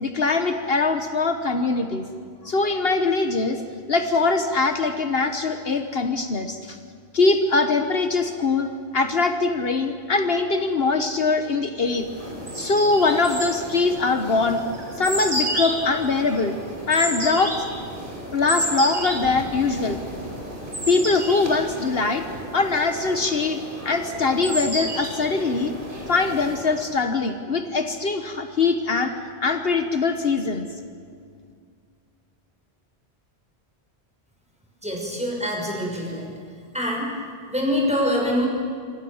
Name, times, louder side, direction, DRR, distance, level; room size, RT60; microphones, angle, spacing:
voice 1, 0.0-2.0 2.4-3.6 3.9-6.8 7.1-12.1 12.5-14.6 15.0-16.6 16.9-17.5 18.3-20.0 20.9-22.2 22.5-25.7 26.1-29.1 29.4-30.7, left 3 dB, 65° left, 7 dB, 1.4 m, -22 dB
sound 1, 11.9-26.9, right 1 dB, 50° right, 4.8 m, -32 dB
voice 2, 34.8-36.3 36.7-37.1 37.5-38.5, equal, 5° right, -1 dB, 6.2 m, -24 dB
26.5 x 25.5 x 7.2 m, 2.2 s
omnidirectional pair, 1.1 m